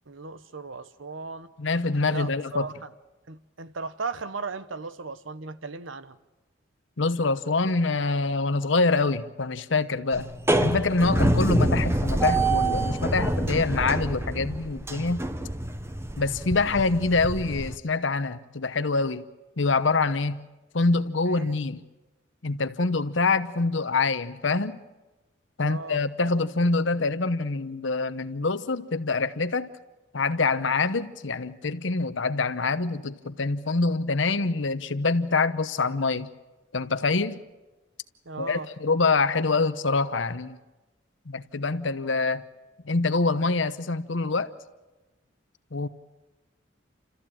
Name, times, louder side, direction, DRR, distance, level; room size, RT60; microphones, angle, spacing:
voice 1, 0.1-1.5 2.1-2.7 3.3-6.2 21.3-21.5 25.6-26.0 38.2-38.7, right 4 dB, 85° right, 1.0 m, -36 dB
voice 2, 1.6-2.7 7.0-10.3 10.6-15.3 16.2-19.3 19.6-20.5 20.7-21.8 22.4-24.8 25.6-29.7 30.1-36.3 36.7-37.4 38.4-40.6 41.3-42.4 42.8-44.5 45.7-45.9, left 3 dB, 75° left, 1.0 m, -25 dB
sound 1, 10.1-17.8, right 1 dB, 15° right, 0.7 m, -26 dB
29.5 x 14.0 x 8.8 m
head